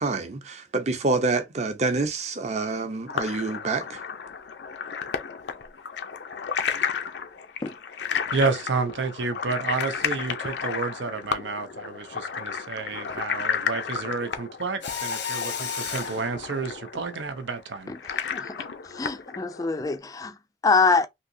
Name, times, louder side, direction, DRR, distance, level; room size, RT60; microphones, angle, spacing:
voice 1, 0.0-4.0, right 3 dB, 40° right, 0.6 m, -27 dB
sound 1, 3.1-20.0, left 6 dB, 75° left, 0.5 m, -33 dB
voice 2, 8.3-17.9, right 4 dB, 85° right, 0.6 m, -30 dB
Mechanisms, 14.8-16.3, left 7 dB, 90° left, 1.1 m, -32 dB
voice 3, 18.9-20.3 20.6-21.1, left 4 dB, 20° left, 0.4 m, -24 dB
3.5 x 2.8 x 2.6 m
head